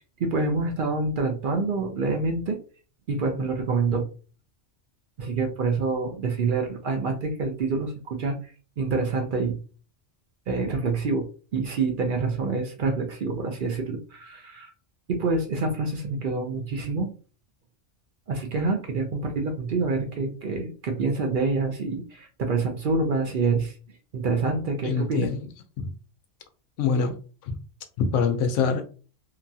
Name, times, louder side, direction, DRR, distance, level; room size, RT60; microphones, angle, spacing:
voice 1, 0.2-2.6 3.1-4.1 5.2-9.6 10.5-14.7 15.1-17.1 18.3-23.8 24.1-25.3, right 3 dB, 60° right, 3 dB, 0.6 m, -27 dB
voice 2, 24.8-25.5 25.8-25.9 26.8-27.2 27.4-27.6 28.0-28.8, left 5 dB, 90° left, 6 dB, 0.9 m, -24 dB
2.9 x 2.3 x 2.6 m, 0.38 s
omnidirectional pair, 1.2 m